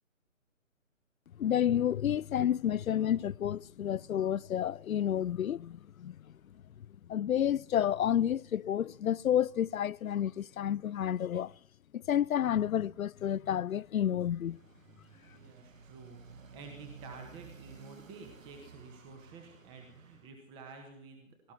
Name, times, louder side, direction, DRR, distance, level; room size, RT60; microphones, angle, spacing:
voice 1, 1.4-6.2 7.1-11.5 11.9-14.6, left 10 dB, 85° left, 0.5 m, -30 dB
Motorcycle, 14.3-20.3, right 5 dB, 70° right, 1.9 m, -54 dB
voice 2, 15.3-21.5, right 4 dB, 10° right, 1.4 m, -50 dB
17.5 x 17.0 x 4.5 m
figure-of-eight pair, 145°, 41 cm